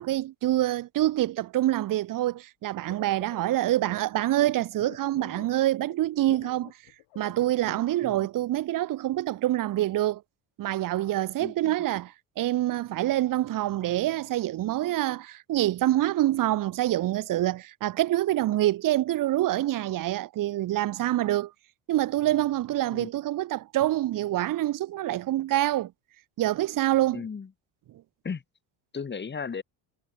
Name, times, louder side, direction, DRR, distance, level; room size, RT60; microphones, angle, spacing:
voice 1, 0.0-6.7 7.2-10.2 10.6-21.5 21.9-25.9 26.4-27.2, right 14 dB, 40° right, 0.8 m, -26 dB
sound 1, 2.9-8.2, left 20 dB, 70° left, 3.0 m, -48 dB
voice 2, 11.4-11.7 22.9-23.1 27.1-27.5 28.2-28.4 28.9-29.6, left 5 dB, 20° left, 1.7 m, -35 dB
cardioid pair, 110°, 49 cm